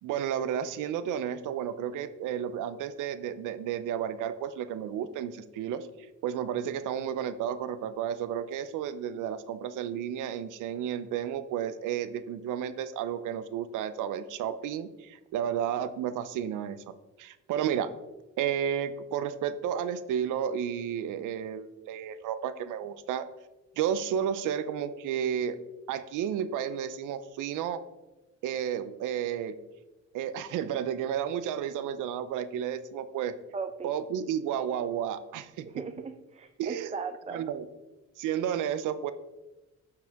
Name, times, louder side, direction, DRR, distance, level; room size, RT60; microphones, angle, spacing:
voice 1, 0.0-5.9 6.2-16.8 17.2-17.9 18.4-23.3 23.8-25.6 25.9-27.8 28.4-29.6 30.1-33.3 33.8-35.8 36.6-36.9 37.3-37.7 38.2-39.1, right 9 dB, 90° right, 13 dB, 0.7 m, -32 dB
voice 2, 33.5-33.9 35.7-37.5, right 5 dB, 20° right, 7 dB, 0.6 m, -38 dB
12.0 x 4.9 x 3.5 m, 1.0 s
cardioid pair, 90°, 30 cm